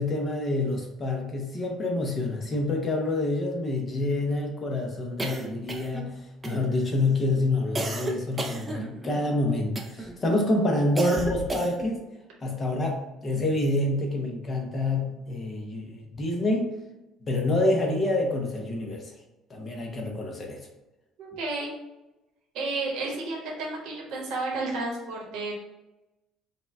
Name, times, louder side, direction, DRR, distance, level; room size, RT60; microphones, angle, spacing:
voice 1, 0.0-6.2 6.4-12.0 12.4-16.7 17.2-19.0 19.5-20.6, left 2 dB, 30° left, 1 dB, 0.8 m, -27 dB
sound 1, 5.2-6.1 6.4-7.0 7.8-9.2 9.8-10.2 11.0-12.0, right 2 dB, 15° right, 0.5 m, -33 dB
voice 2, 21.2-21.7 22.5-25.5, right 3 dB, 75° right, -2 dB, 1.2 m, -32 dB
5.1 x 2.3 x 3.4 m, 0.99 s
cardioid pair, 140°, 0 cm